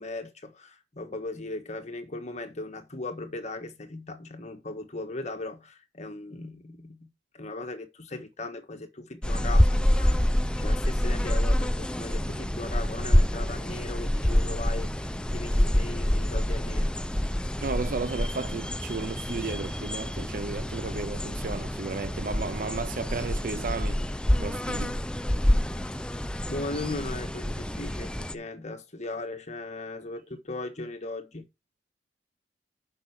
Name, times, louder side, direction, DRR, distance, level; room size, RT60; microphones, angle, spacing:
voice 1, 0.0-10.2 10.6-16.9 26.5-31.5, left 2 dB, 40° left, 1.5 m, -38 dB
sound 1, 9.2-28.3, equal, 5° left, 0.5 m, -27 dB
voice 2, 17.6-24.0 24.4-25.0, right 4 dB, 50° right, 0.5 m, -34 dB
7.7 x 5.9 x 6.0 m
head